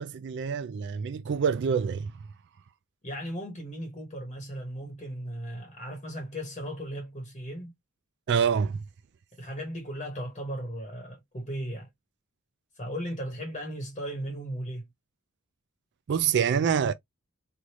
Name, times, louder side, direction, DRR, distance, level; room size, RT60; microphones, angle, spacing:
voice 1, 0.0-2.1 8.3-8.8 16.1-16.9, right 7 dB, 55° right, 0.3 m, -26 dB
voice 2, 3.0-7.7 9.4-11.9 12.8-14.9, equal, 30° left, 1.2 m, -36 dB
3.2 x 2.5 x 2.9 m
head